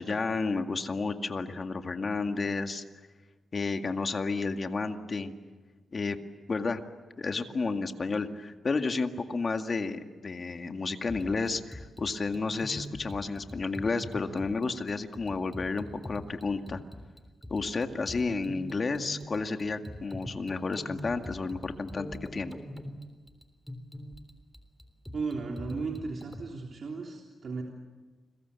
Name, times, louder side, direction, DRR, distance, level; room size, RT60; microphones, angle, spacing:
voice 1, 0.0-2.8 3.5-5.3 5.9-6.2 6.5-6.8 7.2-16.8 17.5-22.6, left 4 dB, 40° left, 6 dB, 1.9 m, -31 dB
sound 1, 11.1-26.4, equal, 5° left, 3.6 m, -43 dB
voice 2, 25.1-27.6, right 4 dB, 55° right, 0 dB, 3.4 m, -35 dB
30.0 x 22.5 x 8.3 m, 1.3 s
cardioid pair, 100°, 0 cm